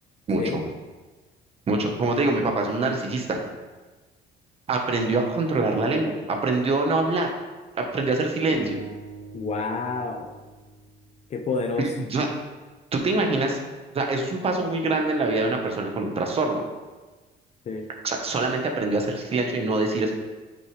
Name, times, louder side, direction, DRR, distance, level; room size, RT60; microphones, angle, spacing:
voice 1, 0.3-0.6 1.7-3.4 4.7-6.1 6.4-7.3 7.8-8.8 11.8-12.3 12.9-13.6 13.9-16.6 18.0-20.1, right 3 dB, 35° right, 2 dB, 1.1 m, -24 dB
sound 1, 8.5-11.7, right 4 dB, 90° right, 2.0 m, -42 dB
voice 2, 9.3-10.3 11.3-11.9 17.7-17.9, left 4 dB, 40° left, 6 dB, 0.6 m, -29 dB
8.5 x 5.9 x 3.3 m, 1.3 s
cardioid pair, 145°, 18 cm